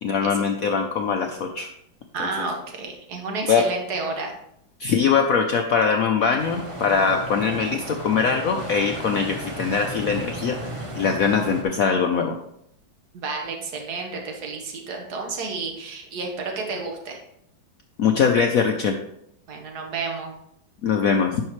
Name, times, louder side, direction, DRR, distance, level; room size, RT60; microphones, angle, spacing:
voice 1, 0.0-1.7 3.5-3.6 4.8-12.4 18.0-19.0 20.8-21.4, left 6 dB, 80° left, 4 dB, 0.7 m, -22 dB
voice 2, 2.1-4.3 13.1-17.2 19.5-20.3, right 4 dB, 55° right, 2 dB, 1.8 m, -31 dB
sound 1, 6.4-11.6, right 1 dB, 25° right, 0.8 m, -34 dB
10.5 x 5.6 x 3.1 m, 0.75 s
omnidirectional pair, 2.2 m